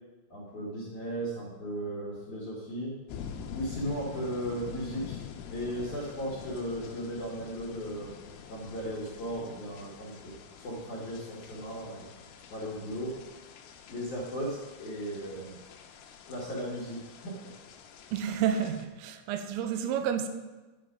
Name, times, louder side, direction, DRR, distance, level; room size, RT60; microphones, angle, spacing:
voice 1, 0.3-2.9 3.5-5.2 5.5-8.1 8.5-10.4 10.6-12.1 12.5-13.2 13.9-15.6 16.3-17.3, equal, 55° left, 2.3 m, -36 dB
sound 1, 3.1-18.9, left 7 dB, 80° left, 3.4 m, -46 dB
voice 2, 18.1-20.3, right 8 dB, 85° right, 3.3 m, -30 dB
10.0 x 9.0 x 5.1 m
omnidirectional pair, 5.9 m